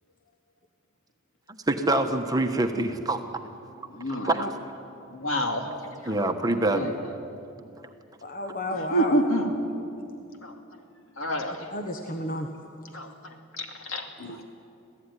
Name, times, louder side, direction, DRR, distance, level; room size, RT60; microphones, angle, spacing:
voice 1, 1.5-3.2 4.2-4.5 6.0-7.1, right 2 dB, 20° right, 5 dB, 1.2 m, -25 dB
voice 2, 3.9-4.3 5.1-5.7 6.0-6.1 6.7-6.9 8.9-9.5 10.4-10.5 11.2-11.7 12.9-13.1 13.6-14.0, equal, 75° left, 4 dB, 2.6 m, -27 dB
voice 3, 8.2-9.2 11.7-12.5 14.2-14.4, left 1 dB, 40° left, 4 dB, 1.2 m, -32 dB
26.5 x 16.5 x 9.9 m, 2.7 s
head